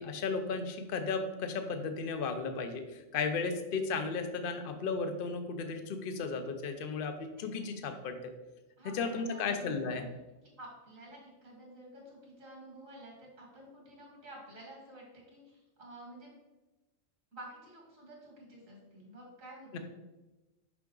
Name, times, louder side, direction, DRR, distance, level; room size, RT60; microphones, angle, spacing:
voice 1, 0.0-8.3 8.8-10.1 19.7-19.8, left 4 dB, 50° left, 7 dB, 0.8 m, -35 dB
voice 2, 8.8-10.0 10.6-16.3 17.3-19.8, right 1 dB, 75° right, -2 dB, 2.6 m, -51 dB
6.0 x 5.7 x 3.8 m, 1.1 s
omnidirectional pair, 1.4 m